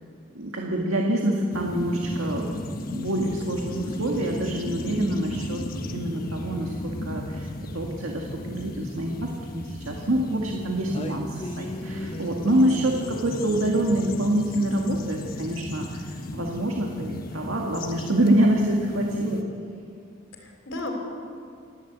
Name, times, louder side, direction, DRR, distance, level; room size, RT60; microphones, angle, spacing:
voice 1, 0.3-2.6 2.9-5.6 5.9-19.4, right 1 dB, 85° right, 0 dB, 2.0 m, -26 dB
sound 1, 1.5-19.4, left 1 dB, 45° left, 1.3 m, -36 dB
sound 2, 10.9-16.4, left 1 dB, 30° left, 1.0 m, -38 dB
voice 2, 12.5-12.9 20.4-20.9, left 2 dB, 70° left, 2 dB, 3.8 m, -36 dB
28.5 x 11.5 x 8.2 m, 2.3 s
head